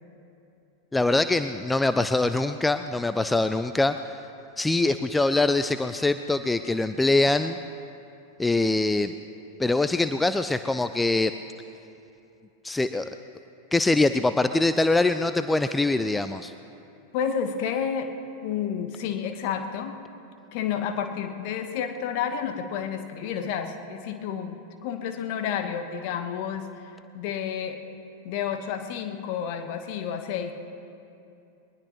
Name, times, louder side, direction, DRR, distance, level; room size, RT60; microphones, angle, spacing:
voice 1, 0.9-4.0 4.6-7.6 8.4-9.1 9.6-11.3 12.6-13.1 13.7-16.5, left 2 dB, 10° left, 10 dB, 0.4 m, -23 dB
voice 2, 17.1-18.1 18.4-20.0 20.5-27.8 28.2-30.5, left 8 dB, 45° left, 6 dB, 1.2 m, -30 dB
22.0 x 20.0 x 3.1 m, 2.7 s
figure-of-eight pair, 90°, 0 cm